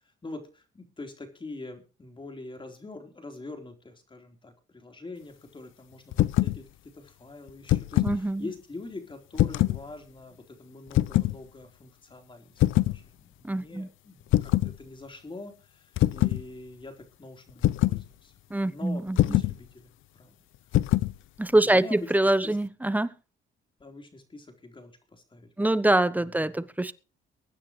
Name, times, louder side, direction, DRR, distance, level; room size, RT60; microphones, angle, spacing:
voice 1, 0.2-18.3 18.7-20.4 21.5-22.6 23.8-26.6, left 2 dB, 25° left, 4.0 m, -44 dB
sound 1, 6.1-6.6 7.5-8.2 9.3-9.8 10.9-11.3 12.6-13.0 14.3-14.7 16.0-16.4 17.6-18.0 19.2-19.6 20.7-21.1, left 15 dB, 85° left, 0.6 m, -23 dB
voice 2, 8.0-8.4 13.4-13.9 18.5-19.2 21.4-23.1 25.6-26.9, right 1 dB, 10° right, 1.0 m, -24 dB
23.0 x 9.5 x 3.2 m
cardioid pair, 90°, 20 cm